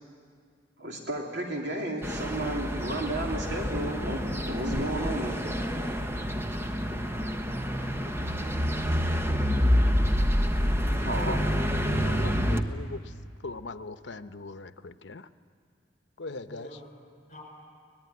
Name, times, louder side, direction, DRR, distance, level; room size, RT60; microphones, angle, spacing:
voice 1, 0.8-5.5 11.0-11.4, right 1 dB, 75° right, 0 dB, 3.2 m, -33 dB
sound 1, 2.0-12.6, equal, 15° right, 1.0 m, -27 dB
voice 2, 4.9-5.9 16.4-17.4, left 1 dB, 40° left, -1 dB, 5.5 m, -45 dB
voice 3, 11.9-13.0 13.4-15.3 16.2-16.7, left 3 dB, 85° left, 11 dB, 0.8 m, -40 dB
24.5 x 19.5 x 9.6 m, 2.1 s
head